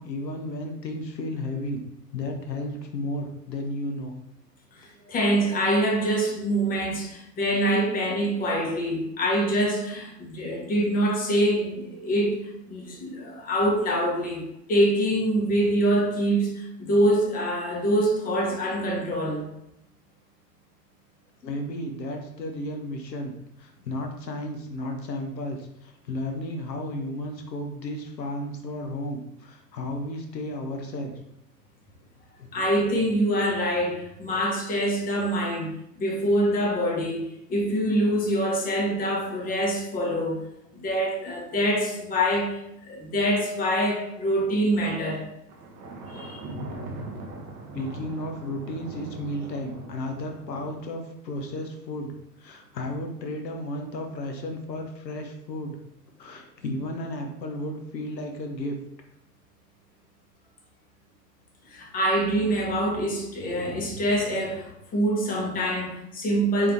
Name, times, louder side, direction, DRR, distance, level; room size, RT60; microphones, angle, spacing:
voice 1, 0.0-1.8 2.1-4.1 21.4-31.2 32.4-32.5 47.7-55.8 56.2-58.8, left 1 dB, 80° left, 0.8 m, -33 dB
voice 2, 5.1-19.5 32.5-40.4 40.7-42.6 42.8-45.3 46.1-46.4 61.7-66.7, right 1 dB, 15° left, 0.8 m, -25 dB
Thunder, 45.5-50.8, right 2 dB, 20° right, 0.4 m, -40 dB
3.6 x 3.3 x 2.9 m
figure-of-eight pair, 95°, 49 cm